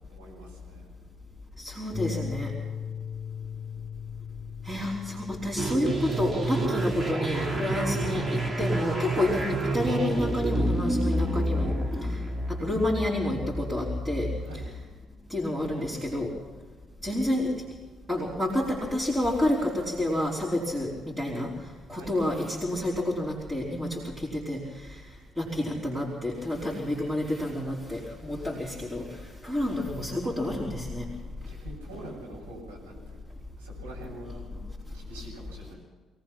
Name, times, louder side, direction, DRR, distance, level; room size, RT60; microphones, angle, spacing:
voice 1, 0.1-0.9 7.7-8.2 14.4-14.7 21.9-22.1 31.5-33.2 33.6-34.4 34.9-35.7, right 2 dB, 85° right, -5 dB, 6.7 m, -45 dB
voice 2, 1.6-2.5 4.6-11.8 12.5-14.3 15.3-16.3 17.0-17.5 18.1-21.5 21.9-24.9 25.4-29.1 29.4-31.1, left 1 dB, 15° right, -4 dB, 4.8 m, -29 dB
sound 1, 1.9-9.0, left 7 dB, 10° left, 2.9 m, -39 dB
sound 2, 5.6-14.7, right 1 dB, 30° right, 2.8 m, -29 dB
23.0 x 19.0 x 6.0 m, 1.3 s
figure-of-eight pair, 45°, 0 cm